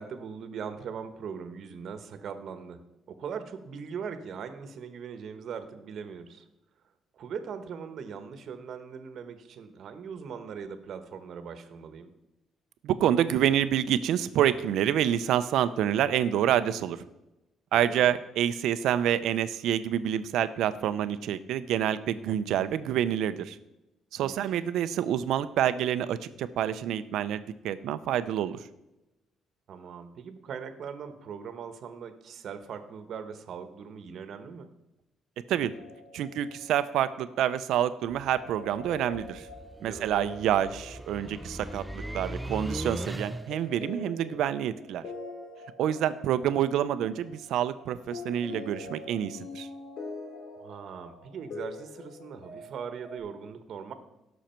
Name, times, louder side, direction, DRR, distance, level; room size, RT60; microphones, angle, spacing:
voice 1, 0.0-2.8 3.1-6.4 7.1-12.1 17.7-18.1 24.2-24.6 29.7-34.7 39.8-40.1 50.6-53.9, right 6 dB, 55° right, 9 dB, 1.2 m, -40 dB
voice 2, 12.8-17.0 17.7-23.6 24.1-28.6 35.5-35.7 36.1-39.5 39.8-45.0 45.8-49.7, right 10 dB, 80° right, 13 dB, 0.6 m, -27 dB
sound 1, 35.7-53.2, left 3 dB, 65° left, 3.0 m, -45 dB
sound 2, 38.1-43.7, right 1 dB, 5° right, 0.4 m, -39 dB
17.0 x 6.3 x 4.5 m, 0.95 s
cardioid pair, 120°, 0 cm